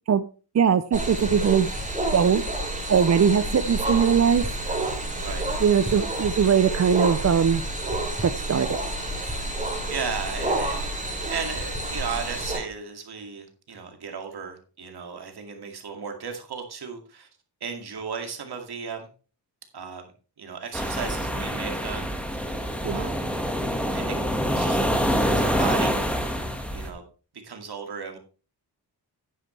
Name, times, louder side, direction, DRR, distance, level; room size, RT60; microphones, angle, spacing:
voice 1, 0.5-1.7 2.1-2.4 2.9-4.6 5.6-7.6 8.2-8.8 22.8-23.1, right 7 dB, 40° right, 12 dB, 0.5 m, -21 dB
sound 1, 0.9-12.6, right 1 dB, 20° right, 3.1 m, -29 dB
voice 2, 9.9-17.3 17.6-19.1 19.7-20.0 20.4-23.2 23.9-24.3 24.5-24.8 25.1-26.0 26.7-27.0 27.4-28.2, right 5 dB, 65° right, 4 dB, 2.3 m, -35 dB
sound 2, 20.7-26.9, equal, 5° left, 1.6 m, -26 dB
10.0 x 9.8 x 3.3 m, 0.35 s
wide cardioid pair, 125°, 41 cm